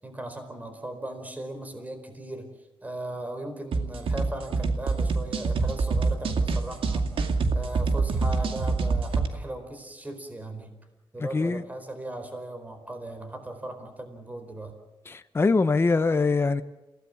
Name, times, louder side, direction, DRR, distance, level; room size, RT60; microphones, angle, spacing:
voice 1, 0.0-2.5 2.8-7.1 7.5-10.8 11.1-14.7, right 1 dB, 15° right, 4.4 m, -38 dB
sound 1, 3.7-9.3, right 4 dB, 80° right, 2.3 m, -26 dB
voice 2, 15.1-16.6, left 3 dB, 25° left, 0.9 m, -23 dB
28.5 x 17.5 x 7.2 m
cardioid pair, 105°, 9 cm